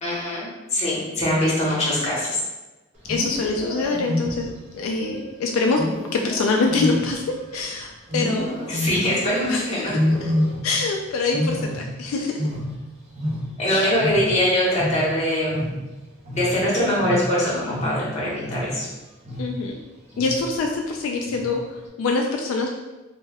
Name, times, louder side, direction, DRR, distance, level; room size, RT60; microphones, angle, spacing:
voice 1, 0.0-2.4 8.7-9.9 13.6-15.6 16.4-18.9, left 1 dB, 35° left, -6 dB, 0.9 m, -22 dB
voice 2, 3.0-5.8 6.1-8.6 9.5-10.3 10.6-12.5 13.7-13.9 19.4-19.8 20.2-22.7, left 3 dB, 85° left, 3 dB, 0.3 m, -25 dB
Wild animals, 3.0-4.7 5.8-7.6 8.1-9.3 9.9-10.9 11.2-13.7 14.0-18.9 19.2-19.7 20.1-20.6 21.3-21.7, left 1 dB, 35° right, 0.6 m, -28 dB
2.2 x 2.1 x 3.3 m, 1.1 s
head